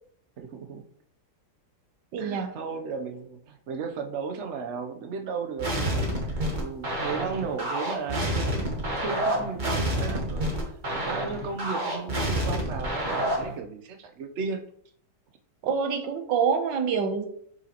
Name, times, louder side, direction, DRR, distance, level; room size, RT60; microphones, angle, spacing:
voice 1, 0.4-0.8 2.2-14.6, right 5 dB, 55° right, 6 dB, 0.8 m, -35 dB
voice 2, 2.1-2.5 15.6-17.3, right 6 dB, 80° right, 7 dB, 1.5 m, -26 dB
sound 1, 5.6-13.5, right 1 dB, 30° right, 1.3 m, -28 dB
6.6 x 5.9 x 2.9 m, 0.64 s
omnidirectional pair, 1.9 m